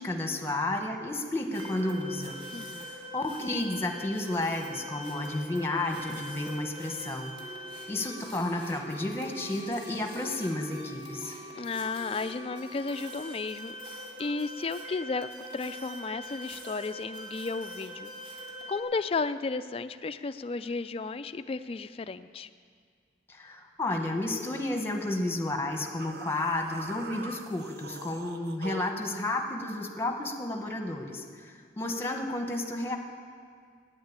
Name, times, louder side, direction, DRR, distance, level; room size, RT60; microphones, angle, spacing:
voice 1, 0.0-2.4 3.1-7.3 7.9-11.3 23.3-33.0, left 2 dB, 15° left, 3 dB, 1.2 m, -32 dB
sound 1, 1.5-18.8, equal, 30° right, 2.0 m, -43 dB
voice 2, 2.5-2.9 11.5-13.8 14.2-18.1 18.7-22.5, left 4 dB, 35° left, 12 dB, 0.4 m, -33 dB
sound 2, 26.0-29.0, right 3 dB, 60° right, 0.7 m, -42 dB
10.5 x 9.1 x 8.7 m, 2.1 s
head